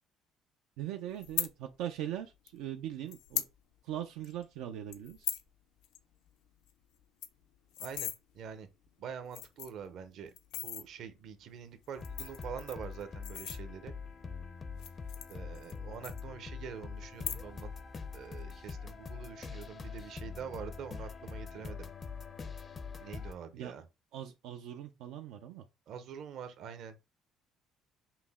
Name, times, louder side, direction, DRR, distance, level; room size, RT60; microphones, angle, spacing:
voice 1, 0.8-3.4 3.8-5.3 23.5-23.7 24.1-25.6, right 11 dB, 90° right, 0.4 m, -40 dB
sound 1, 1.2-1.5 2.5-2.6 3.1-3.5 3.9-4.0 4.2-4.5 4.9-5.5 5.8-6.0 6.3-6.4 6.7-6.8 7.0-8.2 8.8-8.9 9.3-9.9 10.4-10.8 11.8-14.0 14.7-15.8 16.0-16.7 17.1-17.7 18.0-18.4, left 11 dB, 85° left, 0.5 m, -38 dB
voice 2, 7.8-8.7 9.0-13.9 15.3-17.7 18.1-21.9 23.0-23.8 25.9-27.0, right 7 dB, 60° right, 0.7 m, -45 dB
sound 2, 12.0-23.3, left 5 dB, 30° left, 0.5 m, -44 dB
5.8 x 2.1 x 3.5 m
cardioid pair, 120°, 0 cm